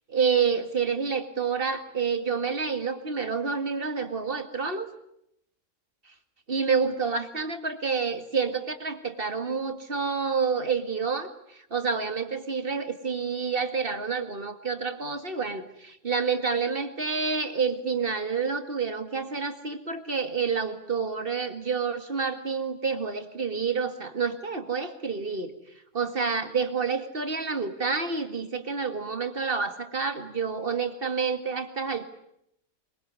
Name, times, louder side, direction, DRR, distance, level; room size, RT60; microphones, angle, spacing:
voice 1, 0.1-4.9 6.5-25.5 25.9-32.0, right 5 dB, 40° right, 8 dB, 2.2 m, -28 dB
24.0 x 23.0 x 9.6 m, 0.75 s
omnidirectional pair, 1.4 m